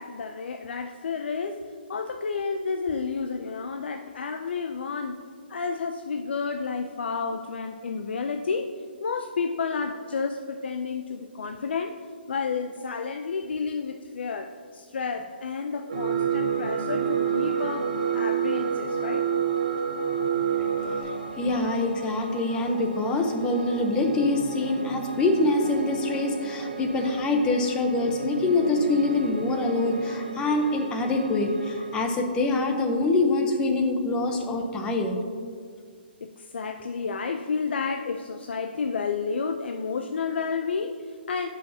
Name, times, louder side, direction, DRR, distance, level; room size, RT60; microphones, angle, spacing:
voice 1, 0.0-5.2 5.5-8.7 9.0-12.0 12.3-19.3 36.2-41.5, left 5 dB, 75° left, 6 dB, 0.5 m, -31 dB
Piano, 15.9-32.0, right 3 dB, 65° right, 1.2 m, -37 dB
sound 1, 15.9-21.0, right 8 dB, 90° right, 1.4 m, -27 dB
voice 2, 21.4-35.2, left 2 dB, 15° left, 4 dB, 0.8 m, -25 dB
14.5 x 5.7 x 2.8 m, 2.1 s
hypercardioid pair, 150°, 6 cm